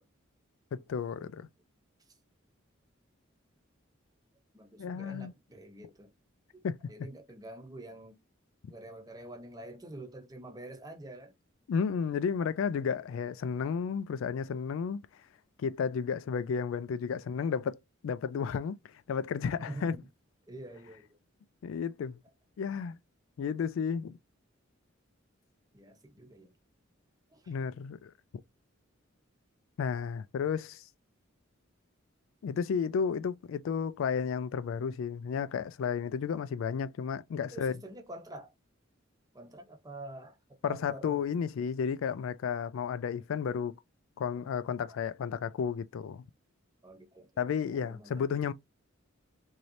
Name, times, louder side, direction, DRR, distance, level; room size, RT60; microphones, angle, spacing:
voice 1, 0.7-1.5 4.8-5.3 6.6-6.8 11.7-15.0 15.6-17.8 18.0-18.8 19.1-20.0 21.6-22.2 22.6-23.0 23.4-24.2 27.5-28.1 29.8-30.8 32.4-37.7 40.6-43.8 44.2-46.2 47.4-48.5, left 6 dB, 75° left, 0.3 m, -32 dB
voice 2, 4.5-6.1 6.5-8.2 8.7-11.3 19.6-20.1 20.5-21.2 25.7-26.5 27.3-27.6 37.5-38.5 39.3-40.4 40.6-41.3 46.8-48.2, right 1 dB, 20° right, 0.7 m, -47 dB
3.1 x 2.7 x 2.6 m
head